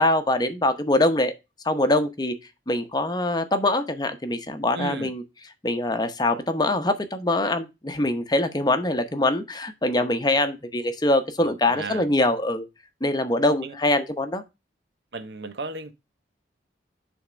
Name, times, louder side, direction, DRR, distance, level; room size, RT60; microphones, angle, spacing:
voice 1, 0.0-1.3 1.6-2.3 2.7-5.2 5.6-12.7 13.0-14.4, left 1 dB, 20° left, 0.8 m, -23 dB
voice 2, 4.7-5.1 11.4-12.1 13.6-13.7 15.1-15.9, right 3 dB, 70° right, 0.8 m, -34 dB
8.7 x 3.6 x 5.0 m
head